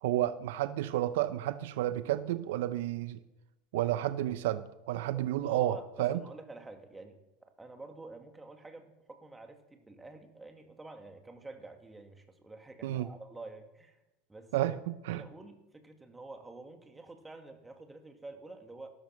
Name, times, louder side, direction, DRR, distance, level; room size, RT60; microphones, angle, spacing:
voice 1, 0.0-3.2 3.7-6.2 12.8-13.1 14.5-14.8 15.1-15.2, right 13 dB, 75° right, 14 dB, 0.8 m, -31 dB
voice 2, 5.1-14.0 14.3-14.7 15.1-18.9, right 2 dB, 10° right, 5 dB, 2.4 m, -49 dB
15.0 x 13.0 x 6.0 m, 0.99 s
supercardioid pair, 105°, 0 cm